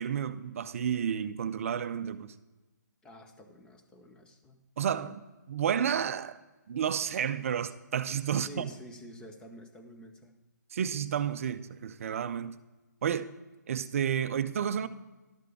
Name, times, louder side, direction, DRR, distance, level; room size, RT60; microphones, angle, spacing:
voice 1, 0.0-2.3 4.8-5.2 5.5-6.4 6.7-8.7 10.7-12.5 13.0-13.3 13.7-14.9, right 8 dB, 45° right, 0.5 m, -31 dB
voice 2, 3.0-4.6 8.3-10.3, equal, 10° left, 0.8 m, -49 dB
12.0 x 6.7 x 4.7 m
figure-of-eight pair, 140°, 10 cm